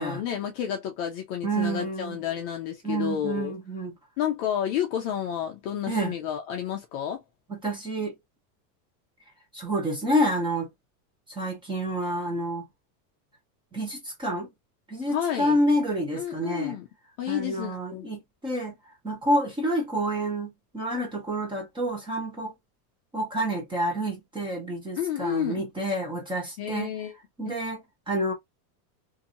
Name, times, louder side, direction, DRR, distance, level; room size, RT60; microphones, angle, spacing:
voice 1, 0.0-3.5 4.2-7.2 15.1-15.6 16.1-16.9 17.2-18.1 25.0-25.6 26.6-27.1 27.5-27.6, left 10 dB, 40° left, 0.5 m, -30 dB
voice 2, 1.4-2.2 2.8-3.9 5.9-6.1 7.5-8.1 9.5-10.7 11.3-12.7 13.7-14.5 14.9-16.8 17.3-18.7 19.0-22.5 23.1-26.9 27.4-28.3, right 1 dB, 10° right, 0.9 m, -28 dB
2.7 x 2.7 x 2.5 m
supercardioid pair, 170°, 46 cm